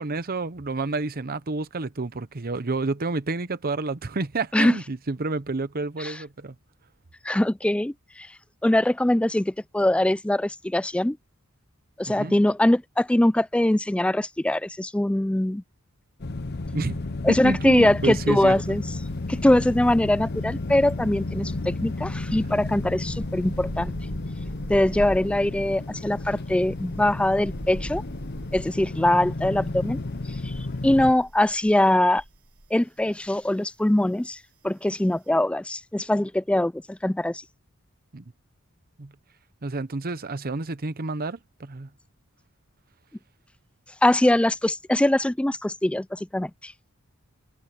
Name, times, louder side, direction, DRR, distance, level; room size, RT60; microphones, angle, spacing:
voice 1, 0.0-6.5 12.1-12.3 16.7-17.0 17.3-18.8 38.1-38.2 39.0-39.1 39.6-41.9, right 3 dB, 45° right, 0.9 m, -29 dB
voice 2, 7.2-8.3 8.6-11.2 12.0-15.6 17.2-18.8 19.3-23.9 24.7-28.0 28.5-30.0 30.4-30.5 30.8-32.2 32.7-34.4 34.6-37.4 44.0-46.7, left 1 dB, 5° left, 0.3 m, -22 dB
sound 1, 16.2-31.1, left 2 dB, 50° left, 0.8 m, -32 dB
sound 2, 18.1-18.9 19.2-32.7 33.0-33.3, right 1 dB, 80° right, 2.8 m, -41 dB
head